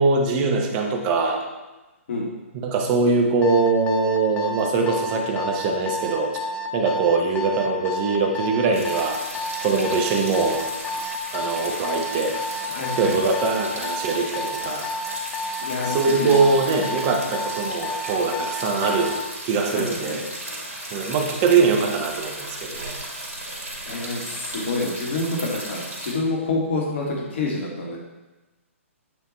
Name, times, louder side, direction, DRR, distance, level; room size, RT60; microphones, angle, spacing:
voice 1, 0.0-1.4 2.6-6.4 6.7-9.2 9.6-10.6 11.3-14.9 15.8-19.2 19.4-20.2 20.9-23.0, right 4 dB, 35° right, 2 dB, 0.9 m, -22 dB
Alarm, 3.4-19.2, left 1 dB, 15° left, 0.4 m, -30 dB
sound 1, 8.7-26.1, right 1 dB, 80° right, 2.0 m, -35 dB
voice 2, 12.7-13.1 15.6-16.5 19.7-20.2 23.9-28.0, left 3 dB, 55° left, -2 dB, 1.8 m, -27 dB
8.1 x 2.9 x 4.2 m, 1.1 s
figure-of-eight pair, 130°, 8 cm